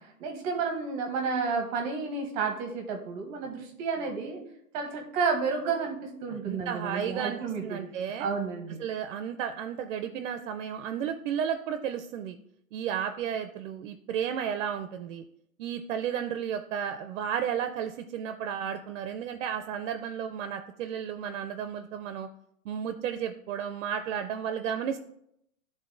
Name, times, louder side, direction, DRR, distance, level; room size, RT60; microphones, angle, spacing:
voice 1, 0.0-4.4 4.7-8.8, right 5 dB, 30° right, 2 dB, 0.8 m, -31 dB
voice 2, 6.5-8.3 8.8-12.4 12.7-15.2 15.6-22.3 22.7-25.0, right 8 dB, 60° right, 8 dB, 0.5 m, -33 dB
11.0 x 3.7 x 2.6 m, 0.74 s
hypercardioid pair, 150°, 42 cm